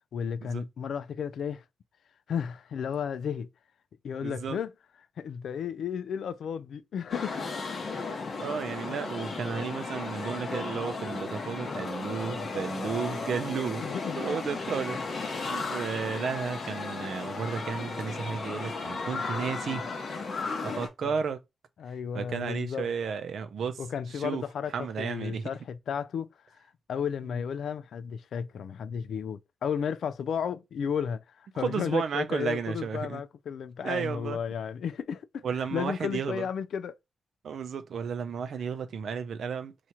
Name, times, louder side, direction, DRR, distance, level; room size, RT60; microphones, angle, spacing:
voice 1, 0.1-1.6 2.3-3.5 4.0-4.7 5.2-7.6 13.8-14.5 20.7-21.2 21.8-22.9 23.8-26.6 26.9-37.0, left 7 dB, 75° left, 0.3 m, -33 dB
voice 2, 4.2-4.6 8.4-13.9 14.2-15.0 15.3-19.8 20.6-21.4 22.1-23.8 24.1-24.4 24.7-25.5 31.5-33.2 33.8-34.4 35.4-36.5 37.4-39.7, right 6 dB, 65° right, 0.5 m, -33 dB
sound 1, 7.1-20.9, left 4 dB, 45° left, 0.9 m, -35 dB
2.9 x 2.4 x 4.1 m
wide cardioid pair, 155°, 0 cm